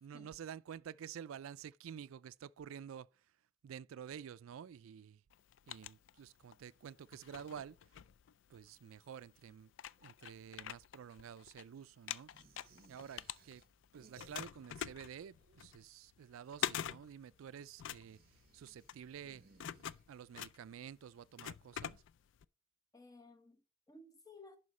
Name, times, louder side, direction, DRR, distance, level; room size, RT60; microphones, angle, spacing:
voice 1, 0.0-3.1 3.6-5.2 5.7-7.8 8.5-9.7 10.0-12.3 12.9-13.6 13.9-18.2 18.5-19.4 20.1-22.0, right 8 dB, 85° right, 0.3 m, -50 dB
sound 1, 5.3-6.6 7.1-8.8 9.4-9.5 9.7-11.6 11.9-13.8 14.2-22.4, left 10 dB, 60° left, 0.3 m, -45 dB
sound 2, 12.3-14.9 15.1-15.9 17.9-20.5, right 4 dB, 50° right, 0.7 m, -65 dB
voice 2, 22.9-24.6, left 2 dB, 15° left, 1.0 m, -57 dB
11.0 x 4.5 x 4.1 m
head